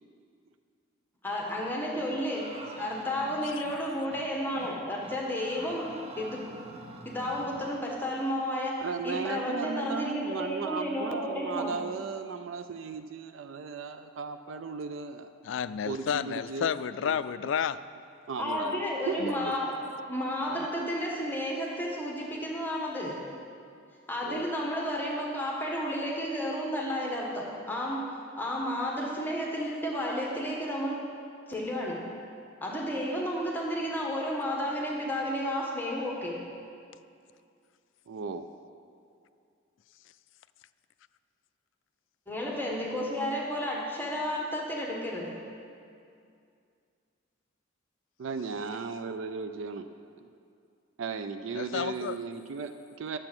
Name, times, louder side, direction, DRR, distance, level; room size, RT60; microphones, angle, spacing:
voice 1, 1.2-5.9 6.2-6.5 7.0-11.7 18.4-19.8 20.1-23.2 24.1-28.0 28.4-31.0 31.5-32.0 32.6-36.4 42.3-45.3, equal, 10° left, 1.3 m, -32 dB
voice 2, 1.9-2.2 8.8-15.3 15.9-16.8 17.0-17.2 18.3-18.8 19.1-19.3 20.6-20.9 24.2-24.5 38.1-38.4 48.2-49.8 50.2-50.3 51.0-53.2, right 5 dB, 70° right, 0.4 m, -36 dB
sound 1, 2.3-3.8 4.1-4.3 4.5-4.7 5.0-7.8, right 2 dB, 30° right, 0.8 m, -46 dB
voice 3, 15.4-17.8 19.2-19.5 51.5-52.2, left 7 dB, 65° left, 0.3 m, -31 dB
10.5 x 7.7 x 6.1 m
head